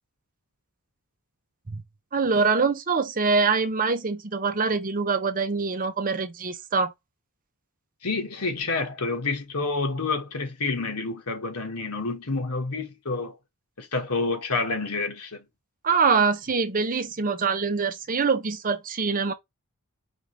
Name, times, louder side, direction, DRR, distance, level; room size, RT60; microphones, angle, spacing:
voice 1, 2.1-6.9 15.8-19.3, right 4 dB, 40° right, 0.7 m, -24 dB
voice 2, 8.0-13.3 13.8-15.4, left 3 dB, 90° left, 1.6 m, -28 dB
5.1 x 3.0 x 3.3 m
head